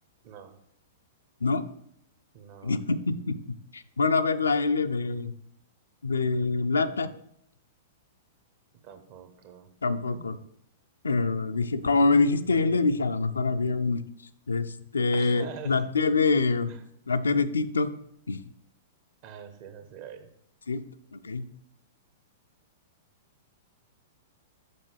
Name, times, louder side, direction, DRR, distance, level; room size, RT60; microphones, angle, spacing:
voice 1, 0.2-0.6 2.3-2.8 8.8-9.7 10.1-10.2 15.1-15.8 16.7-16.8 19.2-20.3, right 8 dB, 45° right, 9 dB, 0.9 m, -44 dB
voice 2, 2.6-3.4 3.7-5.3 6.0-7.1 9.8-10.4 11.0-14.0 14.5-16.7 17.1-17.9 18.3-18.4 20.7-20.8 21.1-21.4, left 3 dB, 75° left, 11 dB, 0.4 m, -25 dB
6.7 x 5.4 x 3.3 m, 0.71 s
figure-of-eight pair, 105°, 0 cm